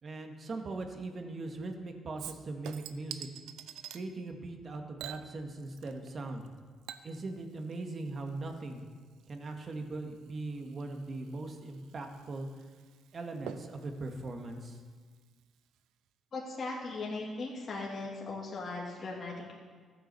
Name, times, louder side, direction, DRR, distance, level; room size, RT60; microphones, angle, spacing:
voice 1, 0.0-3.3 3.9-6.5 7.0-8.8 9.3-12.5 13.1-14.8, right 2 dB, 45° right, 4 dB, 2.0 m, -40 dB
Chink clink / Liquid, 2.2-4.0 5.0-6.1 6.4-15.4 15.8-15.9, right 10 dB, 90° right, 0.7 m, -49 dB
voice 2, 16.3-19.5, left 3 dB, 45° left, -3 dB, 2.8 m, -38 dB
14.5 x 9.0 x 6.9 m, 1.5 s
cardioid pair, 90°, 0 cm